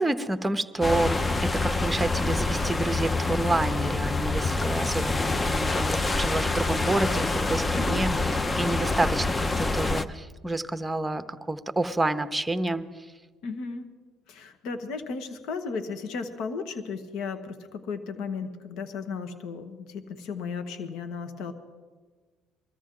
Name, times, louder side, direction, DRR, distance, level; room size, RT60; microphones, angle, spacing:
voice 1, 0.0-13.1, right 2 dB, 10° right, 10 dB, 0.8 m, -29 dB
sound 1, 0.8-10.0, left 3 dB, 20° left, 0.7 m, -26 dB
voice 2, 7.7-8.0 13.4-13.9 14.3-21.5, left 5 dB, 70° left, 7 dB, 1.2 m, -35 dB
22.5 x 14.0 x 3.8 m, 1.4 s
supercardioid pair, 80°, 0 cm